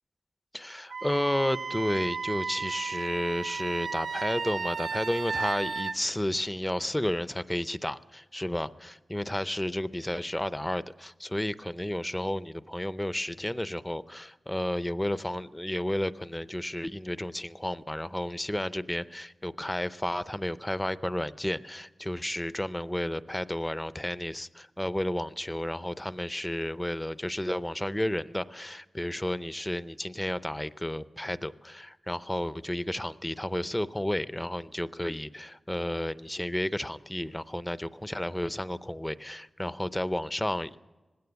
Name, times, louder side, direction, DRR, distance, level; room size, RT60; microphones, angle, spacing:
voice 1, 0.5-40.8, left 1 dB, 10° left, 15 dB, 0.6 m, -32 dB
Wind instrument woodwind instrument, 0.9-6.0, right 5 dB, 80° right, 0.6 m, -34 dB
19.5 x 16.5 x 8.1 m, 1.2 s
wide cardioid pair, 80°, 0 cm